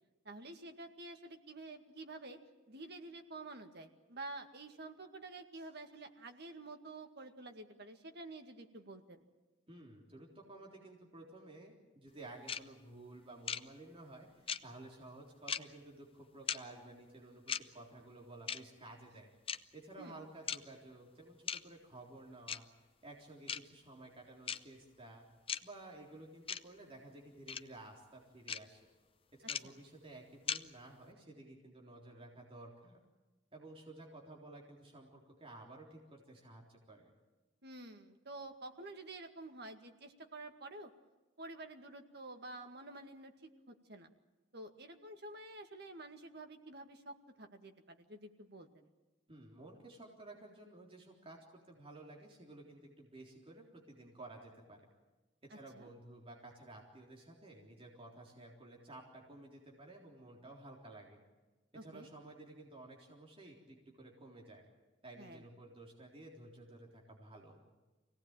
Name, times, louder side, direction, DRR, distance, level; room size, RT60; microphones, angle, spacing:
voice 1, 0.2-2.4 2.7-9.2 20.0-20.2 37.6-40.9 41.4-44.1 44.5-48.7 55.5-55.9 61.7-62.1 65.2-65.5, right 2 dB, 60° right, 5 dB, 2.1 m, -50 dB
voice 2, 9.7-19.3 19.7-22.7 23.0-25.3 25.6-28.8 29.4-33.0 33.5-37.1 49.3-54.8 55.4-61.2 61.8-64.6 65.0-67.6, right 2 dB, 30° right, -1 dB, 3.7 m, -54 dB
sound 1, 12.5-12.6 13.5-13.6 14.5-14.6 15.5-15.6 16.5-16.6 17.5-17.6 18.5-18.6 19.5-19.6 20.5-20.6 21.5-21.6 22.5-22.6 23.5-23.6 24.5-24.6 25.5-25.6 26.5-26.6 27.5-27.6 28.5-28.6 29.5-29.6 30.5-30.6, left 7 dB, 30° left, 0.7 m, -37 dB
25.0 x 18.0 x 9.0 m, 1.2 s
head